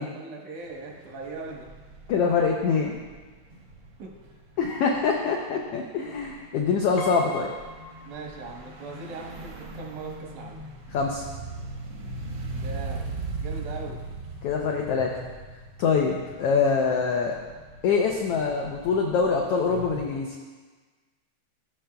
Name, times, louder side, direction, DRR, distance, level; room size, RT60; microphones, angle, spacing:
voice 1, 0.0-1.7 4.0-4.2 8.0-10.6 12.5-14.0, right 4 dB, 80° right, 0 dB, 2.6 m, -40 dB
sound 1, 0.6-20.1, right 2 dB, 60° right, 1.2 m, -40 dB
voice 2, 2.1-3.0 4.6-7.5 10.9-11.2 14.4-15.1 15.8-17.4 17.8-20.3, left 5 dB, 85° left, 0 dB, 1.3 m, -24 dB
Piano, 7.0-8.8 9.1-9.2 10.4-10.5 10.8-11.0, left 1 dB, 70° left, 2.0 m, -40 dB
14.5 x 6.2 x 2.3 m, 1.4 s
omnidirectional pair, 3.4 m